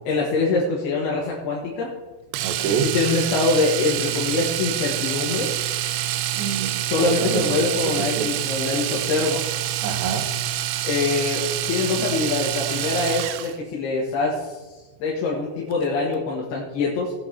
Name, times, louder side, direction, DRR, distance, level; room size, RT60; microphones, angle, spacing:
voice 1, 0.1-1.9 2.7-5.5 6.9-9.4 10.8-14.6 15.0-17.1, left 3 dB, 85° left, -4 dB, 3.5 m, -24 dB
Domestic sounds home sounds, 2.3-13.6 15.7-15.8 16.1-16.2, right 13 dB, 90° right, 2.8 m, -27 dB
voice 2, 2.4-3.0 6.3-8.3 9.8-10.3, right 6 dB, 70° right, 6 dB, 2.6 m, -27 dB
18.0 x 8.8 x 2.9 m, 1.2 s
omnidirectional pair, 4.5 m